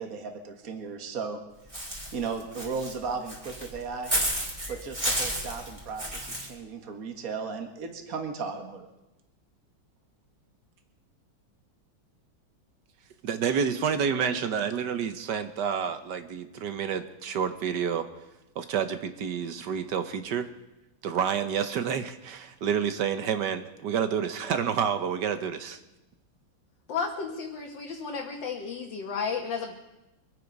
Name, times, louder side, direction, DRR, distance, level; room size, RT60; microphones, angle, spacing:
voice 1, 0.0-1.4 2.1-4.1 4.7-8.9, right 5 dB, 45° right, 4 dB, 1.9 m, -35 dB
Walk footsteps / Bird, 1.7-6.5, equal, 15° right, 3.3 m, -32 dB
voice 2, 13.2-18.0 18.6-20.5 21.0-25.8, right 7 dB, 65° right, 10 dB, 1.4 m, -29 dB
voice 3, 26.9-29.7, left 5 dB, 65° left, 1 dB, 1.9 m, -33 dB
24.5 x 9.2 x 5.3 m, 0.96 s
omnidirectional pair, 2.3 m